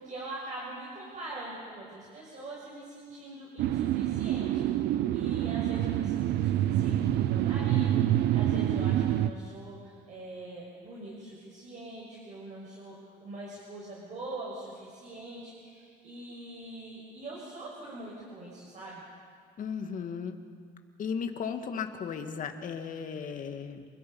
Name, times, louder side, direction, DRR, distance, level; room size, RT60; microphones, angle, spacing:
voice 1, 0.0-12.9 13.2-19.0, right 2 dB, 45° right, -5 dB, 6.4 m, -43 dB
sound 1, 3.6-9.3, right 12 dB, 75° right, 0.8 m, -27 dB
voice 2, 19.6-20.4 21.0-23.9, left 6 dB, 50° left, 6 dB, 2.0 m, -35 dB
29.5 x 21.0 x 5.5 m, 2.1 s
cardioid pair, 110°, 17 cm